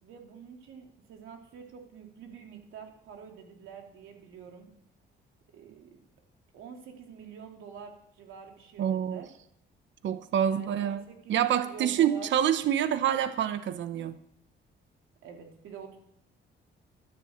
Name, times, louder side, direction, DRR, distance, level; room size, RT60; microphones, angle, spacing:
voice 1, 0.0-4.7 5.5-6.0 6.5-9.3 10.4-12.3 15.2-16.0, right 7 dB, 85° right, 3.2 m, -47 dB
voice 2, 8.8-9.2 10.0-11.0 11.3-14.2, right 9 dB, 70° right, 1.0 m, -27 dB
13.0 x 10.5 x 7.3 m
cardioid pair, 90°, 20 cm